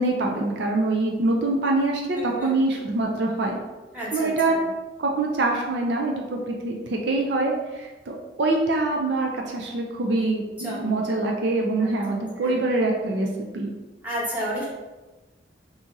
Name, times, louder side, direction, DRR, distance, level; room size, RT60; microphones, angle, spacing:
voice 1, 0.0-3.6 4.1-4.6 5.0-13.7, right 2 dB, 70° right, 1 dB, 0.5 m, -24 dB
voice 2, 2.1-2.5 3.9-4.6 10.6-10.9 11.8-11.9 12.4-12.5 14.0-14.6, equal, 10° right, -8 dB, 1.2 m, -31 dB
2.9 x 2.7 x 3.6 m, 1.1 s
head